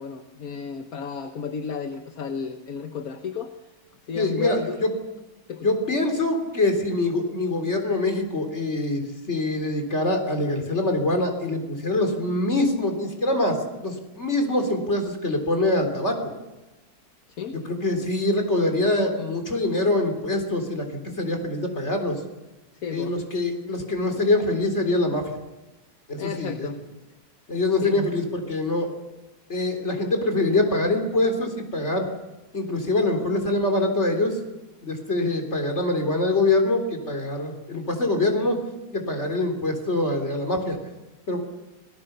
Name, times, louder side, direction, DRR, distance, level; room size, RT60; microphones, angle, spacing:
voice 1, 0.0-3.7 4.0-4.9 5.5-5.7 17.3-17.6 22.7-23.2 26.2-26.8 27.8-28.1, left 6 dB, 50° left, 6 dB, 1.4 m, -32 dB
voice 2, 4.2-4.9 5.6-13.6 13.8-16.4 17.7-22.2 22.9-25.4 26.1-26.7 27.5-28.9 29.5-32.1 32.5-34.4 34.8-38.6 38.9-40.8 41.3-41.4, left 2 dB, 30° left, 4 dB, 3.7 m, -24 dB
26.5 x 18.5 x 6.8 m, 1.1 s
omnidirectional pair, 2.3 m